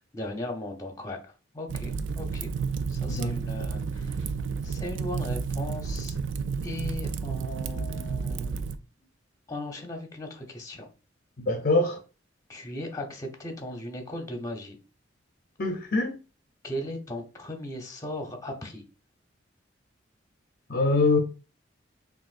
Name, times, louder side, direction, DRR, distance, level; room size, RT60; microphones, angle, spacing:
voice 1, 0.1-2.5 2.9-4.2 4.6-6.2 6.6-8.7 9.5-10.9 12.5-14.8 16.6-18.8, left 1 dB, 15° left, 0.8 m, -37 dB
Fire, 1.7-8.8, right 5 dB, 70° right, 0.3 m, -31 dB
voice 2, 11.4-12.0 15.6-16.2 20.7-21.2, left 2 dB, 45° left, 0.6 m, -24 dB
6.1 x 2.6 x 2.5 m
head